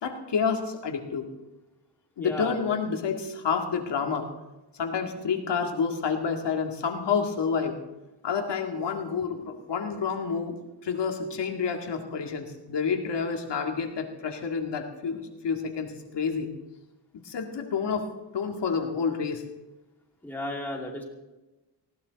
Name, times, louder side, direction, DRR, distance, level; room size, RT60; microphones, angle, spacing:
voice 1, 0.0-1.3 2.2-4.3 4.8-7.8 8.2-10.6 10.8-16.5 17.2-18.0 18.3-19.4, left 6 dB, 75° left, 3 dB, 2.2 m, -29 dB
voice 2, 2.2-2.6 20.2-21.0, left 1 dB, 5° left, -1 dB, 2.5 m, -34 dB
19.5 x 15.0 x 4.1 m, 1.1 s
wide cardioid pair, 135°, 42 cm